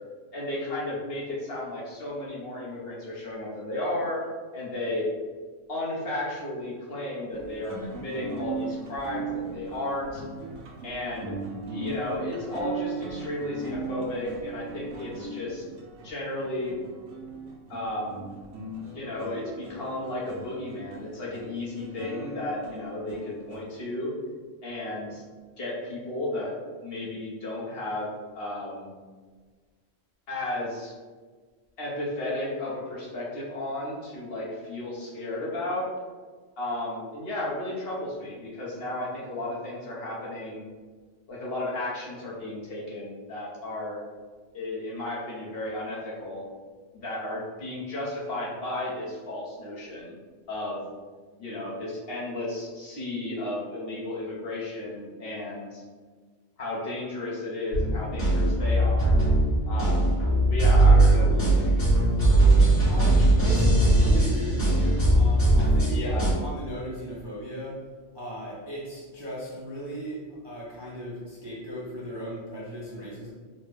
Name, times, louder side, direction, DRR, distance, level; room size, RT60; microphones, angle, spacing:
voice 1, 0.3-4.3 4.5-5.1 5.7-10.2 10.8-11.3 11.7-15.6 16.0-16.7 17.7-18.2 18.8-24.1 24.6-25.2 25.6-26.5 26.8-28.1 28.3-28.9 30.3-30.9 31.8-35.9 36.6-40.7 41.3-44.0 44.5-46.4 46.9-50.1 50.5-50.8 51.4-55.8 56.6-59.1 59.7-60.2 60.5-61.9 65.9-66.3, left 1 dB, 55° left, -5 dB, 1.0 m, -33 dB
sound 1, 7.3-23.8, right 3 dB, 85° right, 1.0 m, -38 dB
sound 2, 57.7-66.3, right 2 dB, 70° left, 1.9 m, -20 dB
voice 2, 62.9-66.0 66.4-67.8 68.1-73.3, right 1 dB, 30° right, -7 dB, 0.5 m, -37 dB
4.2 x 2.1 x 3.2 m, 1.5 s
omnidirectional pair, 1.3 m